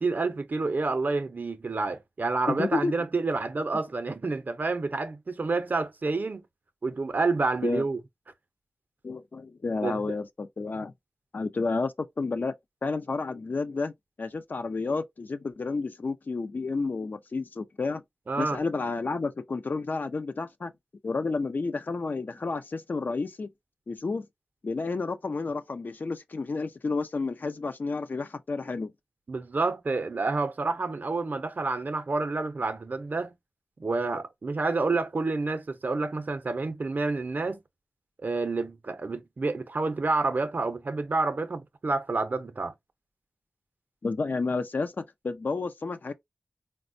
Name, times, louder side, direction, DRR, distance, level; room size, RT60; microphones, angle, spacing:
voice 1, 0.0-6.4 6.8-8.0 9.8-10.0 18.3-18.6 29.3-33.3 33.8-37.6 38.2-42.7, right 3 dB, 55° right, 0.5 m, -29 dB
voice 2, 2.5-2.9 7.6-7.8 9.0-10.9 11.3-12.5 12.8-13.9 14.2-18.0 18.4-20.7 21.0-23.5 23.9-24.3 24.6-28.9 44.0-46.1, left 3 dB, 55° left, 0.4 m, -31 dB
4.1 x 2.1 x 2.5 m
wide cardioid pair, 80°, 4 cm